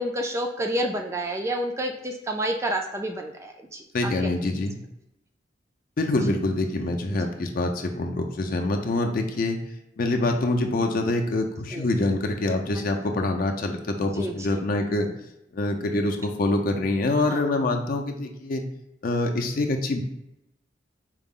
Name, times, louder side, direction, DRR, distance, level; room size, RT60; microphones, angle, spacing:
voice 1, 0.0-4.1 7.1-7.3 11.7-11.9 14.1-14.6 17.3-17.4, right 1 dB, 15° right, 3 dB, 0.3 m, -29 dB
voice 2, 3.9-4.8 6.0-9.6 10.0-15.1 15.5-18.6 19.0-20.0, left 2 dB, 50° left, 4 dB, 0.5 m, -25 dB
4.6 x 2.0 x 3.6 m, 0.84 s
head